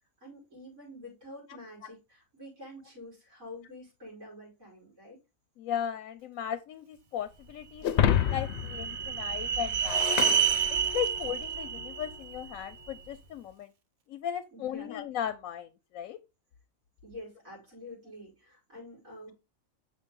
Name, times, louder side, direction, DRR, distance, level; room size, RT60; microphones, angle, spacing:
voice 1, 0.2-5.2 14.5-15.0 17.0-19.3, left 1 dB, 90° right, 4.8 m, -47 dB
voice 2, 5.6-10.3 10.7-13.7 14.1-16.2, left 10 dB, 90° left, 1.1 m, -37 dB
Shatter, 7.8-11.3, left 10 dB, 65° left, 0.7 m, -30 dB
sound 1, 7.8-13.0, right 8 dB, 40° right, 0.9 m, -30 dB
7.1 x 5.4 x 3.7 m
omnidirectional pair, 1.4 m